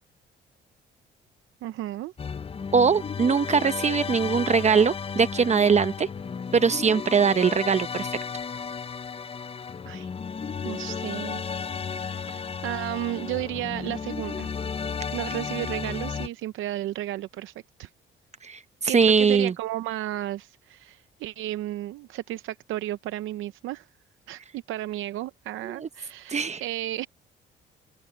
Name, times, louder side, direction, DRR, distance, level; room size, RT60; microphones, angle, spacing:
voice 1, 1.6-2.1 9.8-10.1 10.6-11.5 11.9-14.5 15.1-17.5 17.8-17.9 18.8-23.9 24.3-27.1, right 14 dB, 85° right, 0.6 m, -33 dB
Calming Orchestra Background Music, 2.2-16.3, left 6 dB, 30° left, 0.6 m, -34 dB
voice 2, 2.7-6.1 6.5-8.1 18.4-19.5 25.6-25.9 26.3-26.6, right 6 dB, 35° right, 0.8 m, -21 dB
open air
cardioid pair, 90°, 20 cm